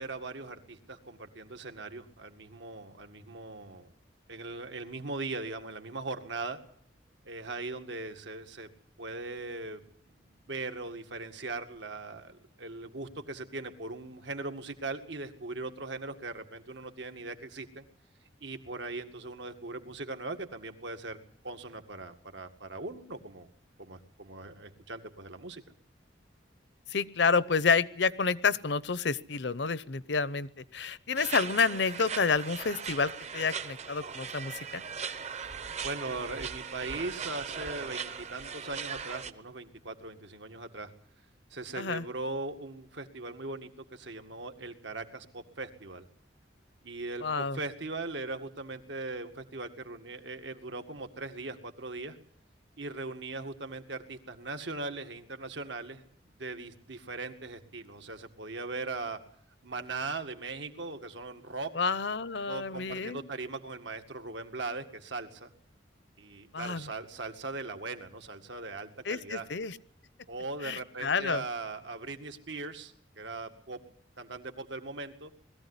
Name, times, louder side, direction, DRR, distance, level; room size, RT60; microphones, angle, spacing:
voice 1, 0.0-3.9 4.3-6.6 7.3-8.7 9.0-9.8 10.3-17.9 18.4-21.2 21.4-23.5 23.8-25.6 35.5-40.9 41.5-46.1 46.8-52.2 52.8-56.0 56.4-59.2 59.6-61.7 62.5-65.5 66.2-69.5 70.3-73.8 74.2-75.3, right 3 dB, 75° right, 6 dB, 2.1 m, -39 dB
voice 2, 26.9-34.8 41.7-42.0 47.2-47.6 61.7-63.3 66.5-66.9 69.0-69.8 70.6-71.4, left 5 dB, 70° left, 17 dB, 0.8 m, -29 dB
sound 1, 31.2-39.3, right 6 dB, 35° right, 0.9 m, -39 dB
20.5 x 14.5 x 9.8 m, 0.63 s
head